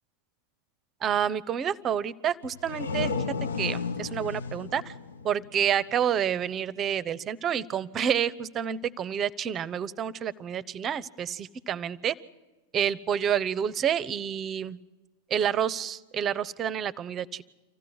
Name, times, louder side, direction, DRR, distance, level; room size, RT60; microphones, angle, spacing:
voice 1, 1.0-3.1 3.6-4.9 5.2-12.2 12.7-14.8 15.3-17.4, right 8 dB, 25° right, 19 dB, 0.7 m, -29 dB
sound 1, 2.4-6.0, left 4 dB, 70° left, 0.8 m, -33 dB
26.0 x 15.5 x 9.5 m, 1.1 s
figure-of-eight pair, 90°, 0 cm